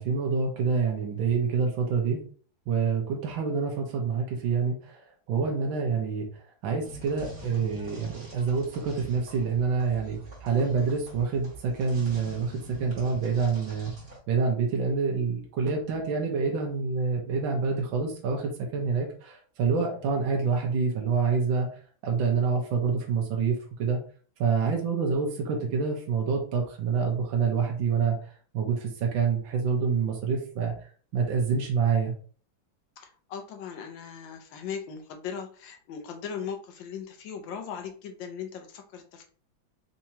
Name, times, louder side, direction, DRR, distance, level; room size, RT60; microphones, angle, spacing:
voice 1, 0.0-2.2 2.7-6.3 6.6-12.5 12.8-13.9 14.3-21.7 22.0-24.0 24.4-28.1 28.5-30.7 31.1-32.1, right 5 dB, 80° right, 1 dB, 1.5 m, -27 dB
sound 1, 6.8-14.2, right 1 dB, 30° right, 1.7 m, -45 dB
voice 2, 33.0-39.3, left 7 dB, 75° left, 5 dB, 1.4 m, -38 dB
4.5 x 2.9 x 2.7 m, 0.42 s
omnidirectional pair, 2.1 m